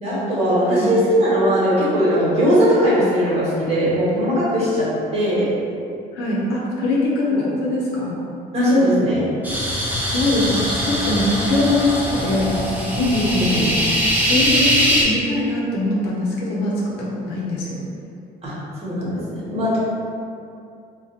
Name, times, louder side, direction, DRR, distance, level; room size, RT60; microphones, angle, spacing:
voice 1, 0.0-4.9 5.1-5.5 7.3-7.4 8.5-9.3 13.0-13.7 18.4-18.5 18.8-19.8, equal, 35° right, -9 dB, 1.3 m, -19 dB
voice 2, 6.1-8.2 10.1-12.6 13.5-13.8 14.2-17.8, left 2 dB, 85° left, -5 dB, 0.8 m, -22 dB
sound 1, 9.4-15.0, equal, 10° right, 0.6 m, -22 dB
2.5 x 2.4 x 4.1 m, 2.5 s
cardioid pair, 110°, 17 cm